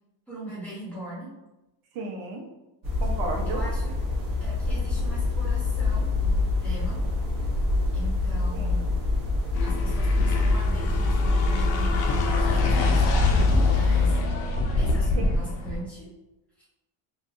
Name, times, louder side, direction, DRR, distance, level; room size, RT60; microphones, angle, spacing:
voice 1, 0.3-1.3 3.5-3.9 4.4-7.0 7.9-8.9 9.6-14.4 14.7-16.1 16.6-16.7, right 1 dB, 5° left, -7 dB, 0.7 m, -40 dB
voice 2, 1.9-2.4 3.0-3.6 8.5-8.7 15.2-15.6, right 2 dB, 85° right, 1 dB, 0.8 m, -34 dB
sound 1, 2.8-14.2, left 3 dB, 35° right, 0.6 m, -24 dB
sound 2, 9.5-15.8, left 1 dB, 70° left, 0.6 m, -27 dB
2.7 x 2.4 x 2.5 m, 1.0 s
cardioid pair, 170°, 49 cm